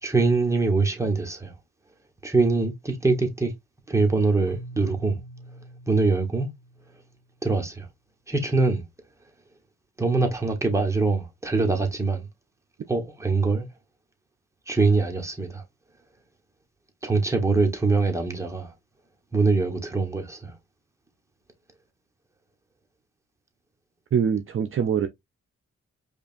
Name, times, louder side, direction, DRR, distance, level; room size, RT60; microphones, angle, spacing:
voice 1, 0.0-1.5 2.2-3.5 3.9-5.2 5.9-6.5 7.4-7.9 8.3-8.8 10.0-12.3 12.9-13.7 14.7-15.6 17.0-18.7 19.3-20.5, right 3 dB, 10° right, 1.3 m, -23 dB
Keyboard (musical), 4.5-7.4, equal, 65° left, 1.3 m, -45 dB
voice 2, 24.1-25.1, right 7 dB, 45° right, 0.5 m, -23 dB
5.0 x 2.4 x 2.6 m
cardioid pair, 70°, 29 cm